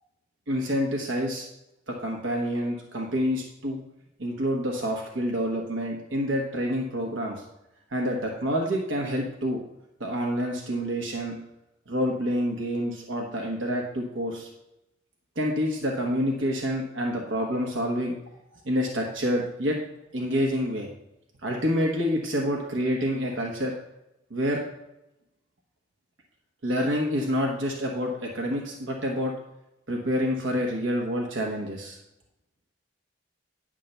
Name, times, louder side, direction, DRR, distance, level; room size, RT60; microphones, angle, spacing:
voice 1, 0.5-1.4 1.9-3.8 4.2-7.4 7.9-9.6 10.0-11.4 11.9-14.5 15.4-18.2 18.6-19.8 20.1-20.9 21.4-23.7 24.3-24.6 26.6-29.3 29.9-32.0, equal, 80° right, 0 dB, 1.2 m, -27 dB
10.0 x 3.7 x 6.6 m, 0.89 s
head